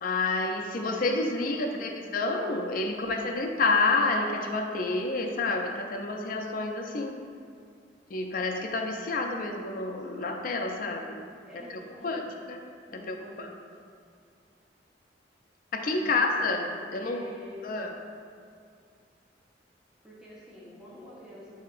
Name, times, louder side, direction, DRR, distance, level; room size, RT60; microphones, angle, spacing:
voice 1, 0.0-7.1 8.1-11.3 11.5-12.2 12.5-12.6 12.9-13.5 15.7-16.6 16.9-17.2 17.6-18.0, left 3 dB, 50° left, 3 dB, 0.4 m, -29 dB
voice 2, 1.5-2.0 11.4-12.3 12.9-13.6 16.0-17.8 20.0-21.6, left 1 dB, 5° right, -8 dB, 0.7 m, -47 dB
7.7 x 2.8 x 2.4 m, 2.3 s
head